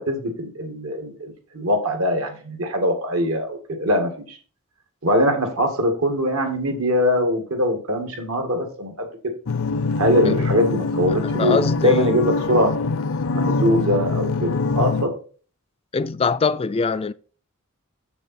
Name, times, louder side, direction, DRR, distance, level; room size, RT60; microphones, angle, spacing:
voice 1, 0.0-4.4 5.0-9.1 10.0-11.6 11.8-12.7 13.3-15.1, equal, 70° right, 1.9 m, -22 dB
sound 1, 9.5-15.0, left 3 dB, 70° left, 0.6 m, -24 dB
voice 2, 11.4-12.1 15.9-17.1, left 4 dB, 25° left, 0.3 m, -22 dB
7.1 x 6.9 x 4.2 m
head